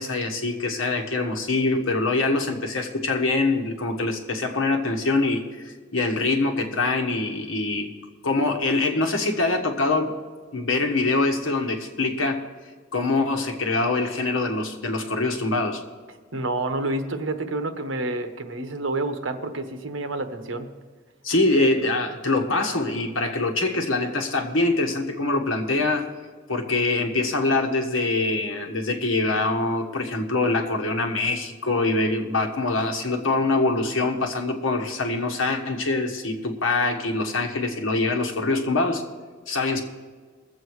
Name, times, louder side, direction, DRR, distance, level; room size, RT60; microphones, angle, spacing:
voice 1, 0.0-7.9 8.2-10.2 10.5-12.4 12.9-15.8 21.2-26.0 26.5-39.0 39.5-39.8, left 2 dB, 80° left, 3 dB, 1.4 m, -24 dB
voice 2, 16.3-20.7, right 2 dB, 75° right, 7 dB, 1.1 m, -29 dB
20.5 x 7.6 x 4.8 m, 1.6 s
head